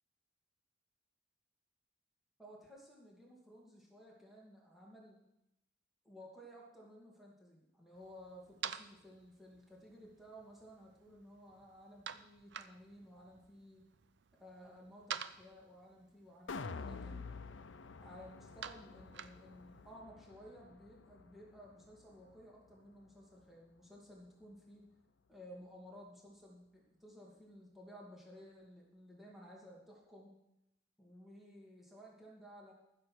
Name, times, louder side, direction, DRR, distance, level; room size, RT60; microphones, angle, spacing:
voice 1, 2.4-5.2 6.0-13.8 14.4-17.3 18.0-24.8 25.3-30.3 31.0-32.7, equal, ahead, -4 dB, 2.5 m, -56 dB
sound 1, 7.9-19.9, right 8 dB, 65° right, 0.6 m, -51 dB
sound 2, 16.5-22.7 23.1-23.2, left 4 dB, 75° left, 0.6 m, -49 dB
14.5 x 6.8 x 6.3 m, 0.85 s
head